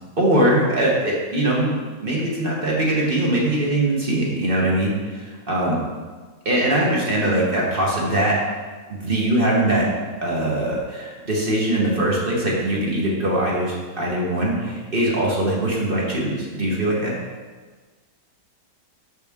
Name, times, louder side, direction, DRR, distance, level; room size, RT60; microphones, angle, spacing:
voice 1, 0.2-1.7 2.0-5.8 6.4-8.4 8.9-9.8 10.2-17.1, right 1 dB, 35° right, -4 dB, 1.0 m, -21 dB
6.3 x 5.7 x 3.5 m, 1.4 s
omnidirectional pair, 1.9 m